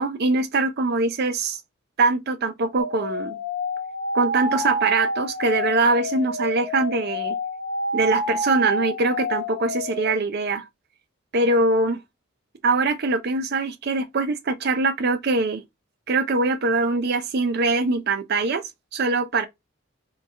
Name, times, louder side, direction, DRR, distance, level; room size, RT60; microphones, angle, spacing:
voice 1, 0.0-1.6 2.0-3.4 4.1-7.3 7.9-10.6 11.3-12.0 12.6-15.6 16.1-18.6 18.9-19.4, right 3 dB, 50° right, 0.5 m, -23 dB
sound 1, 2.8-10.1, equal, 65° left, 1.0 m, -28 dB
4.6 x 2.3 x 4.3 m
head